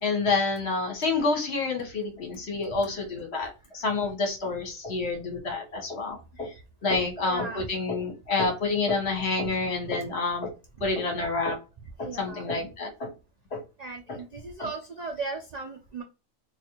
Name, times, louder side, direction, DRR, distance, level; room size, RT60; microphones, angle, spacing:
voice 1, 0.0-6.5 6.8-10.5 10.8-11.6 12.0-13.1 13.5-13.6 14.1-14.2 14.6-14.7, left 3 dB, 55° left, 2 dB, 1.3 m, -28 dB
voice 2, 7.2-7.7 12.0-12.4 13.8-16.0, right 4 dB, 70° right, 3 dB, 0.4 m, -36 dB
4.0 x 2.4 x 2.8 m, 0.30 s
omnidirectional pair, 1.4 m